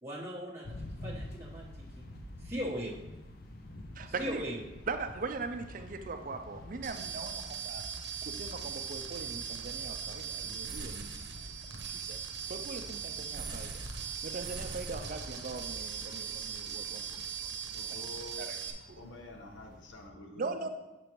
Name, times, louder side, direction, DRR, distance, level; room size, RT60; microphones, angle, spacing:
voice 1, 0.0-2.1 2.4-3.0 4.1-4.6, equal, 15° right, -7 dB, 1.1 m, -39 dB
sound 1, 0.6-20.1, left 1 dB, 55° left, 0.6 m, -49 dB
voice 2, 4.0-4.4 4.9-7.9 8.2-12.2 12.5-13.8 14.2-17.8 18.4-18.6 18.9-19.0 20.4-20.7, right 4 dB, 45° right, 8 dB, 0.5 m, -41 dB
sound 2, 6.8-18.7, right 7 dB, 65° right, 0.9 m, -40 dB
voice 3, 17.7-18.5 18.9-20.7, left 2 dB, 90° left, 3 dB, 1.0 m, -48 dB
7.6 x 6.7 x 3.0 m, 1.1 s
head